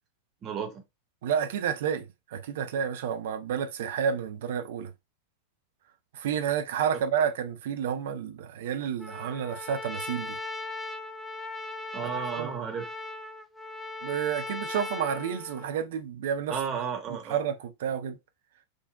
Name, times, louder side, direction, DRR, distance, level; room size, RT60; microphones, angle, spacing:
voice 1, 0.4-0.8 11.9-12.9 16.5-17.4, right 7 dB, 30° right, 1.0 m, -33 dB
voice 2, 1.2-2.0 2.3-4.9 6.1-10.4 12.4-12.5 14.0-16.6 17.3-18.2, right 8 dB, 55° right, 0.5 m, -30 dB
Trumpet, 9.0-15.8, left 2 dB, ahead, 0.5 m, -38 dB
3.8 x 2.4 x 2.3 m
figure-of-eight pair, 90°, 0 cm